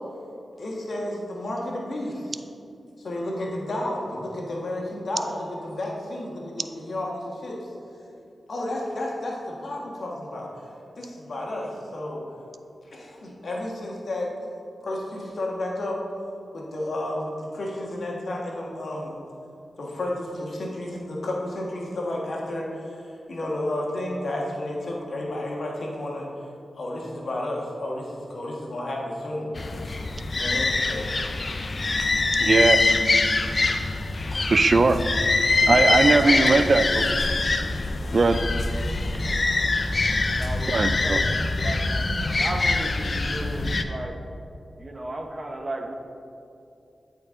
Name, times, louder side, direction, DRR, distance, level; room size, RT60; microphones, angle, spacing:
voice 1, 0.6-2.4 3.0-7.7 8.5-10.5 11.0-12.2 12.9-14.3 14.8-16.0 16.5-19.1 19.8-23.0 23.3-26.3 26.8-29.5 30.4-31.1, left 1 dB, 70° left, -2 dB, 1.5 m, -31 dB
sound 1, 29.6-43.8, left 3 dB, 50° left, 0.5 m, -24 dB
voice 2, 32.4-32.9 34.5-35.0 35.7-37.0 38.1-38.4 40.7-41.2, right 3 dB, 55° right, 10 dB, 0.3 m, -20 dB
voice 3, 35.5-36.8 37.2-37.3 40.4-44.2 44.8-45.9, right 1 dB, 35° right, 3 dB, 0.9 m, -34 dB
12.5 x 4.6 x 3.8 m, 2.6 s
cardioid pair, 55°, 0 cm